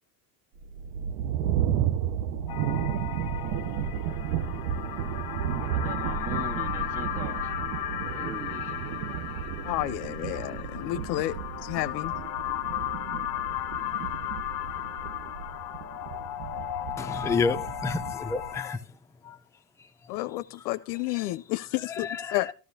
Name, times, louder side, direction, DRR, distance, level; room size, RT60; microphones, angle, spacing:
sound 1, 0.6-18.6, right 9 dB, 70° right, 0.8 m, -33 dB
sound 2, 2.5-18.8, left 13 dB, 50° left, 1.1 m, -35 dB
voice 1, 5.6-7.5 8.0-9.3 9.6-9.7 10.3-10.7 11.1-11.4, right 3 dB, 30° right, 1.9 m, -42 dB
voice 2, 9.6-12.1 20.1-22.5, left 17 dB, 80° left, 0.6 m, -31 dB
voice 3, 17.0-18.8 19.2-19.4 21.9-22.5, left 4 dB, 5° left, 0.5 m, -30 dB
13.5 x 12.5 x 2.7 m
supercardioid pair, 95°, 49 cm